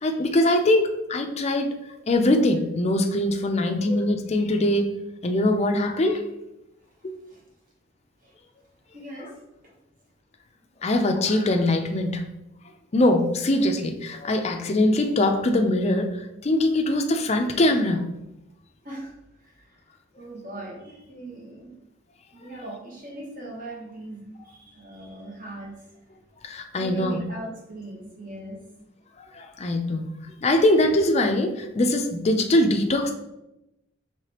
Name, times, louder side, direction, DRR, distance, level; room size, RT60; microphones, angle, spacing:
voice 1, 0.0-1.7 2.1-4.9 5.2-6.2 10.8-12.2 12.9-16.1 16.4-18.1 26.4-27.2 29.3-30.1 30.4-33.1, left 1 dB, 35° left, 5 dB, 0.4 m, -22 dB
voice 2, 3.7-4.1 7.3-7.4 8.2-8.3 8.9-9.3 9.6-9.7 17.1-17.2 18.8-19.1 19.4-19.8 20.2-21.7 22.3-25.8 26.8-28.6, right 1 dB, 45° right, -2 dB, 1.1 m, -39 dB
4.9 x 3.3 x 2.8 m, 0.89 s
head